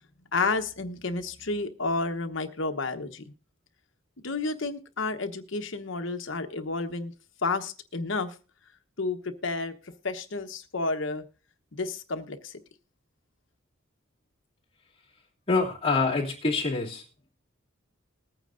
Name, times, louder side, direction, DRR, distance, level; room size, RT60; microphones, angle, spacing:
voice 1, 0.3-3.2 4.2-7.1 7.4-8.3 9.0-9.7 10.0-11.2 11.7-12.5, left 3 dB, 65° left, 7 dB, 1.1 m, -31 dB
voice 2, 15.5-17.0, left 3 dB, 30° left, -4 dB, 2.5 m, -26 dB
20.5 x 8.9 x 2.6 m, 0.36 s
head